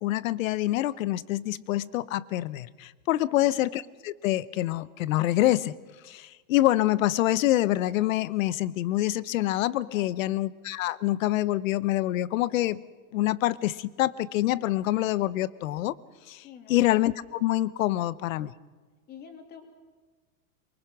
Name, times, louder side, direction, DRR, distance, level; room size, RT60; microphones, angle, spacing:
voice 1, 0.0-5.7 6.0-12.8 13.1-15.9 16.3-18.5, left 15 dB, 70° left, 18 dB, 0.9 m, -26 dB
voice 2, 3.2-3.5 9.9-10.3 16.4-16.8 19.1-19.6, left 7 dB, 20° left, 5 dB, 2.5 m, -47 dB
24.0 x 23.5 x 6.1 m, 1.4 s
supercardioid pair, 175°, 42 cm